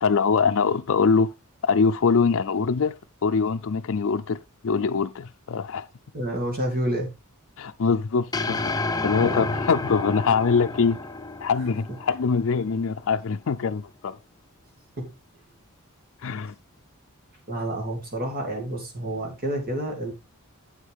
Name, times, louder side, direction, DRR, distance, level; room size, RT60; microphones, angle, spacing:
voice 1, 0.0-1.3 1.6-2.9 3.2-5.8 7.6-8.7 9.0-11.0 11.4-14.2 16.2-16.6, left 5 dB, 65° left, 0.5 m, -23 dB
voice 2, 6.1-7.1 9.2-9.5 15.0-15.1 17.5-20.1, right 1 dB, 45° right, 2.4 m, -29 dB
sound 1, 8.3-12.7, left 3 dB, 15° left, 0.7 m, -30 dB
8.1 x 8.0 x 3.4 m
head